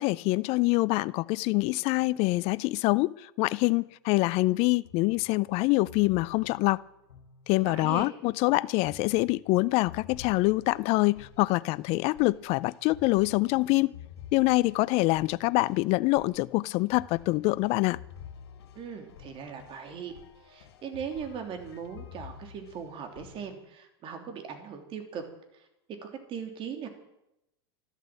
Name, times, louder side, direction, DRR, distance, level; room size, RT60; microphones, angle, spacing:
voice 1, 0.0-6.8 7.5-13.9 14.3-18.0, left 21 dB, 50° left, 0.5 m, -25 dB
sound 1, 4.8-7.9 8.8-23.6, left 7 dB, 80° left, 3.0 m, -50 dB
voice 2, 7.7-8.1 18.7-20.1 20.4-25.2 25.5-25.6 26.0-26.9, right 7 dB, 40° right, 3.2 m, -39 dB
12.5 x 12.0 x 7.6 m
hypercardioid pair, 105°, 14 cm